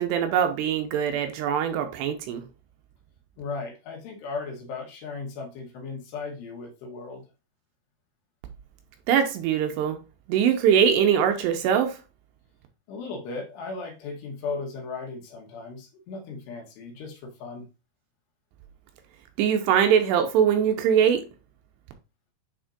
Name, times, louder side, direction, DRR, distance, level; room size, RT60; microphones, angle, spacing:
voice 1, 0.0-2.4 9.1-10.0 10.3-12.0 19.4-21.2, right 8 dB, 80° right, 2.8 m, -22 dB
voice 2, 3.4-7.2 12.9-17.7, left 4 dB, 75° left, 3.2 m, -36 dB
8.9 x 4.3 x 2.5 m
omnidirectional pair, 5.1 m